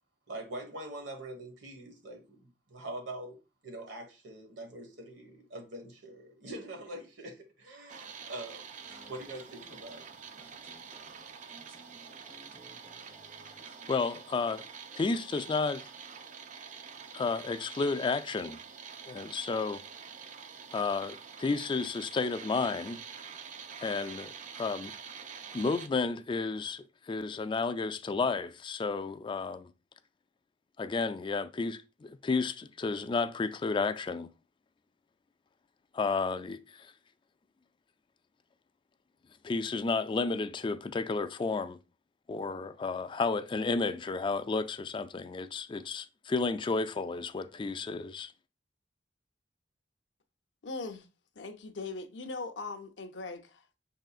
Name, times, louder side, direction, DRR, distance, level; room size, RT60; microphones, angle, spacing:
voice 1, 0.3-3.4 3.6-8.7 9.0-10.0, right 1 dB, 85° right, 1.4 m, -43 dB
sound 1, 7.9-25.9, right 6 dB, 45° right, 0.4 m, -47 dB
sound 2, 8.9-13.9, right 1 dB, 10° right, 0.8 m, -58 dB
voice 2, 13.9-14.6 15.0-15.8 17.1-18.6 19.1-19.8 20.7-23.0 23.8-24.9 25.5-29.7 30.8-34.3 35.9-36.9 39.4-41.8 42.3-48.3, left 4 dB, 25° left, 0.3 m, -32 dB
voice 3, 50.6-51.1 51.4-53.4, left 3 dB, 85° left, 0.6 m, -39 dB
5.5 x 3.8 x 2.4 m
head